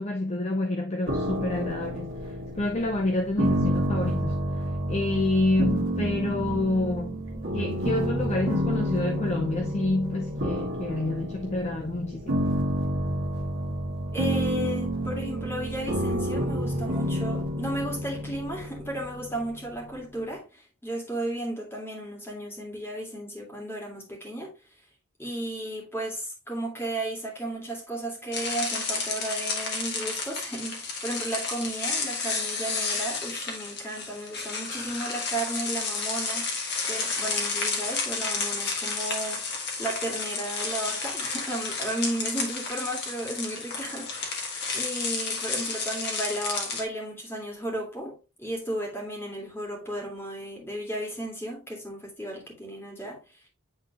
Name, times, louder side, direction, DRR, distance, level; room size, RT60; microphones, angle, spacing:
voice 1, 0.0-4.4 4.9-12.3, left 2 dB, 30° left, 0.6 m, -28 dB
sound 1, 1.1-20.0, equal, 60° right, 1.5 m, -29 dB
voice 2, 14.1-24.5 25.2-53.2, right 1 dB, 10° left, 2.1 m, -34 dB
sound 2, 28.3-46.8, left 4 dB, 50° left, 1.6 m, -31 dB
8.7 x 3.7 x 2.9 m
head